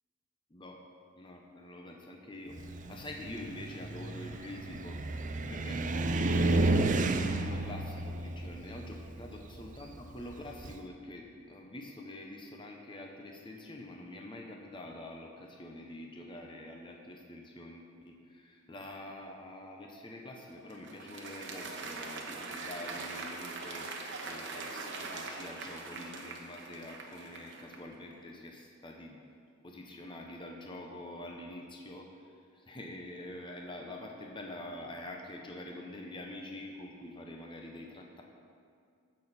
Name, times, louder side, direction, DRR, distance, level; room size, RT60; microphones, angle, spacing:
voice 1, 1.2-2.6 2.9-5.0 5.5-6.8 7.4-29.2 29.6-32.3 32.5-38.2, left 1 dB, 25° left, 1 dB, 0.8 m, -46 dB
Car, 2.6-10.8, right 2 dB, 40° right, 0.5 m, -32 dB
Applause, 20.3-28.0, right 3 dB, 60° right, 1.1 m, -42 dB
15.5 x 6.4 x 4.2 m, 2.2 s
head